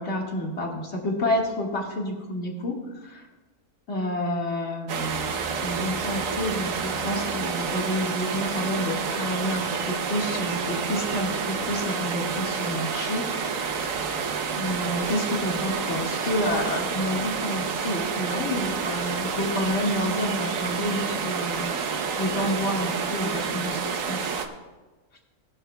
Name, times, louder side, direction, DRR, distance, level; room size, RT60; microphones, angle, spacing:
voice 1, 0.0-3.2 3.9-5.3 5.6-13.2 13.5-13.9 14.5-21.9 22.2-24.3, left 1 dB, 45° left, -1 dB, 2.1 m, -29 dB
sound 1, 4.9-24.5, right 5 dB, 65° right, 1.2 m, -29 dB
18.0 x 11.5 x 2.3 m, 1.2 s
omnidirectional pair, 1.6 m